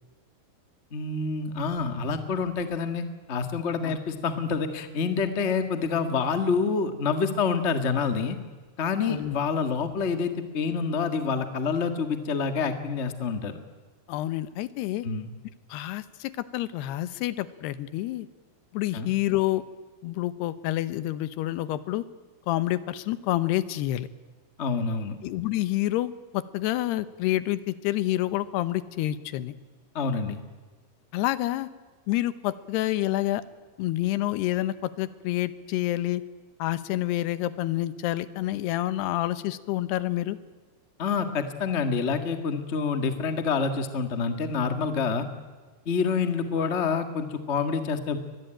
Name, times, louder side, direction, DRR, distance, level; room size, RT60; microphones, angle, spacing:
voice 1, 0.9-8.4 8.8-13.6 15.0-15.3 18.9-19.1 24.6-25.2 29.9-30.4 41.0-45.3 45.8-48.2, left 5 dB, 60° left, 8 dB, 0.7 m, -27 dB
voice 2, 14.1-15.1 15.7-18.3 18.7-19.6 20.0-22.1 22.5-24.1 25.2-29.5 31.1-31.7 32.1-33.4 33.8-36.2 36.6-40.4, left 15 dB, 85° left, 15 dB, 3.0 m, -28 dB
24.0 x 21.0 x 9.0 m, 1.4 s
omnidirectional pair, 4.6 m